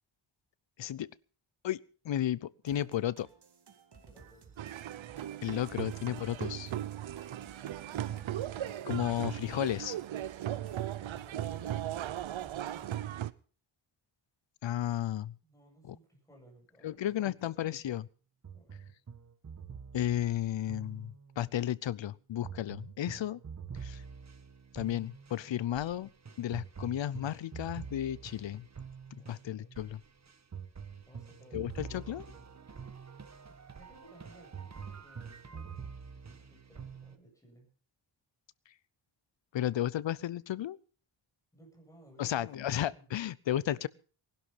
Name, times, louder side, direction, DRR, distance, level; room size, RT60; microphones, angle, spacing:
voice 1, 0.8-1.1 1.6-3.3 5.4-6.7 8.8-10.0 14.6-15.4 15.9-16.0 16.8-18.1 19.9-23.4 23.8-24.0 24.7-26.1 26.4-28.7 29.3-30.0 31.5-32.2 39.5-40.8 42.2-43.9, left 11 dB, 75° left, 21 dB, 0.7 m, -33 dB
sound 1, 2.6-13.1, right 5 dB, 60° right, 2.5 m, -56 dB
voice 2, 4.0-4.9 8.0-8.3 15.4-17.5 18.5-19.0 25.0-25.2 25.6-25.7 29.2-29.9 31.1-32.6 33.7-37.7 41.5-43.2, right 1 dB, 5° left, 0 dB, 7.9 m, -60 dB
sound 2, 4.6-13.3, right 12 dB, 85° right, 0.8 m, -37 dB
sound 3, 18.4-21.5 22.4-37.2, right 6 dB, 35° right, 1.4 m, -46 dB
19.5 x 12.0 x 5.7 m, 0.40 s
wide cardioid pair, 140°, 46 cm